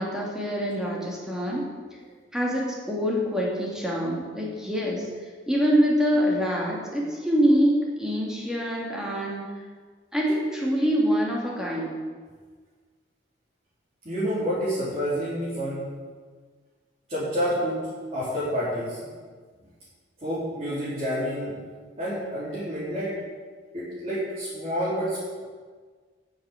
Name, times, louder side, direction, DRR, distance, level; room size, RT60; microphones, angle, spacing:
voice 1, 0.0-1.6 2.3-5.1 5.5-9.5 10.1-11.9, equal, 5° right, -4 dB, 2.6 m, -25 dB
voice 2, 14.0-15.9 17.1-19.1 20.2-21.6 22.0-23.2 23.7-25.4, equal, 30° right, -11 dB, 4.1 m, -29 dB
9.6 x 7.7 x 9.1 m, 1.5 s
head